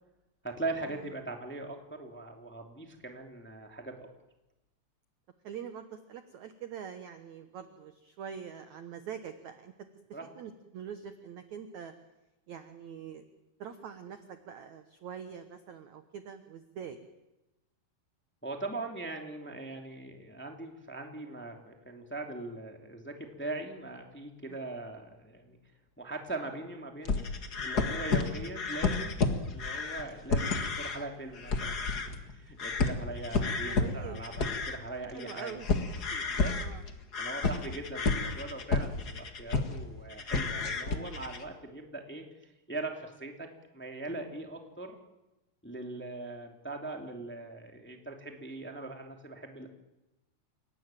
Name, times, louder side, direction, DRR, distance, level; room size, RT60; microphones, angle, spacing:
voice 1, 0.4-4.1 10.1-10.3 18.4-25.6 26.0-31.8 32.3-35.6 36.1-36.5 37.2-43.5 43.7-45.0 45.6-49.7, right 2 dB, 5° left, 3 dB, 1.8 m, -41 dB
voice 2, 5.4-9.7 10.3-11.9 12.5-13.2 13.6-17.0 24.5-24.6 33.7-34.2 35.1-35.7 36.5-36.8 37.4-37.6, right 8 dB, 70° right, 9 dB, 1.8 m, -44 dB
sound 1, 27.0-31.0 31.3-32.3 32.6-39.8 40.1-41.5, left 4 dB, 55° left, 1.0 m, -31 dB
30.0 x 18.0 x 9.1 m, 0.99 s
omnidirectional pair, 5.0 m